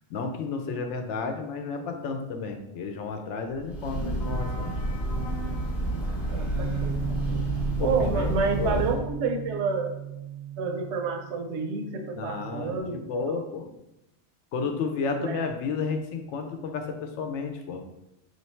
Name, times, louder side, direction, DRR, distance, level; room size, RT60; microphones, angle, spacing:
voice 1, 0.1-4.7 7.8-8.8 12.1-13.7 14.5-17.8, left 4 dB, 85° left, 5 dB, 0.9 m, -32 dB
Breathing / Train, 3.6-9.1, right 1 dB, 35° left, 0.9 m, -30 dB
voice 2, 6.3-7.4 7.8-9.9 10.6-13.4 15.2-15.4, right 4 dB, 75° right, 4 dB, 0.9 m, -29 dB
Bass guitar, 6.6-12.8, right 10 dB, 50° right, 0.6 m, -36 dB
3.2 x 2.7 x 4.3 m, 0.89 s
omnidirectional pair, 1.2 m